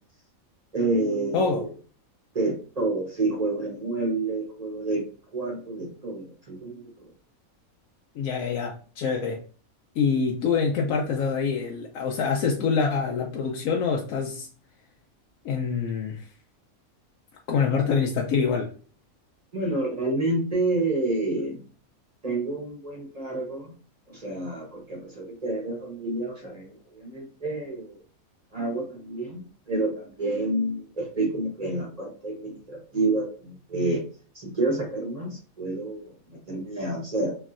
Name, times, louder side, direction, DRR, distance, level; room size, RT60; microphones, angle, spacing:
voice 1, 0.7-1.7 2.3-5.0 5.3-7.1 19.5-21.6 22.2-23.7 24.1-28.0 28.5-34.0 34.3-37.4, right 2 dB, 30° right, -1 dB, 0.9 m, -29 dB
voice 2, 1.3-1.6 8.2-9.4 10.0-14.5 15.4-16.2 17.5-18.7, left 5 dB, 75° left, 0 dB, 1.0 m, -25 dB
3.0 x 2.7 x 2.5 m, 0.40 s
omnidirectional pair, 1.5 m